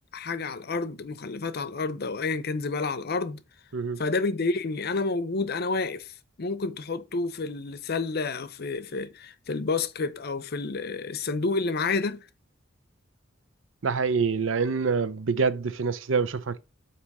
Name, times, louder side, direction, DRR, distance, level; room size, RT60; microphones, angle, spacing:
voice 1, 0.1-3.4 4.0-6.1 6.4-12.3, left 3 dB, 50° left, 0.6 m, -29 dB
voice 2, 13.8-16.6, right 5 dB, 70° right, 0.6 m, -26 dB
8.2 x 3.0 x 5.9 m
head